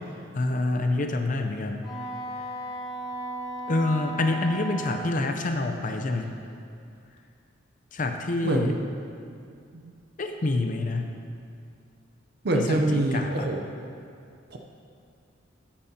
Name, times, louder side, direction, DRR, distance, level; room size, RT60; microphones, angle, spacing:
voice 1, 0.3-1.9 3.7-6.3 7.9-8.7 10.2-11.1 12.5-13.5, left 2 dB, 45° left, 4 dB, 0.6 m, -27 dB
Wind instrument woodwind instrument, 1.8-5.2, right 1 dB, ahead, 2.6 m, -36 dB
voice 2, 8.4-8.8 9.7-9.9 12.4-13.6 14.5-14.6, right 1 dB, 55° right, 2 dB, 0.6 m, -25 dB
14.0 x 8.6 x 2.8 m, 2.4 s
head